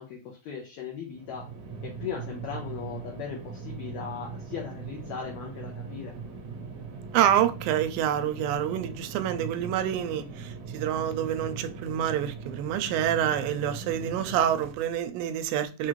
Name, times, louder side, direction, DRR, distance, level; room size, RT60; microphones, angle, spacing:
voice 1, 0.0-1.5 1.8-6.2, left 7 dB, 85° left, 1.6 m, -38 dB
sound 1, 1.1-14.9, right 5 dB, 70° right, 1.6 m, -40 dB
voice 2, 7.1-15.9, right 10 dB, 85° right, 2.3 m, -27 dB
6.1 x 2.4 x 3.1 m
omnidirectional pair, 4.0 m